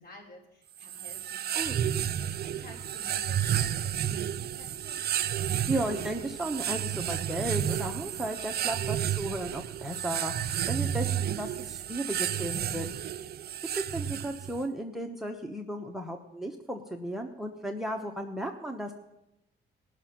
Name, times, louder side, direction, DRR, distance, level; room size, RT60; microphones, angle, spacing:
voice 1, 0.0-1.5 2.0-5.0, left 1 dB, 50° left, -2 dB, 3.9 m, -52 dB
sound 1, 0.8-14.6, right 10 dB, 55° right, 0.5 m, -31 dB
voice 2, 5.5-12.9 13.7-18.9, right 1 dB, ahead, 4 dB, 1.0 m, -35 dB
17.5 x 6.2 x 5.9 m, 0.91 s
cardioid pair, 90°, 20 cm